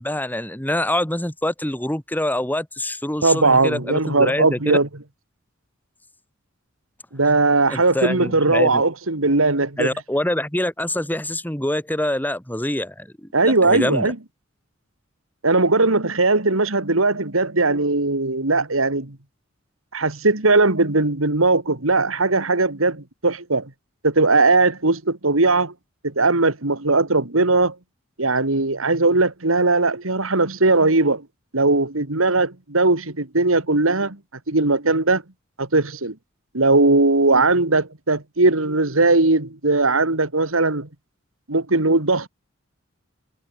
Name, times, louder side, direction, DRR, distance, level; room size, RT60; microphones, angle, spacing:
voice 1, 0.0-4.8 7.7-8.8 9.8-14.1, left 1 dB, 10° left, 2.5 m, -25 dB
voice 2, 3.2-4.9 7.1-9.9 13.3-14.2 15.4-19.2 19.9-23.7 24.0-25.7 26.0-27.8 28.2-31.3 31.5-34.2 34.5-35.2 35.6-36.1 36.5-40.9 41.5-42.3, right 3 dB, 85° right, 2.6 m, -19 dB
head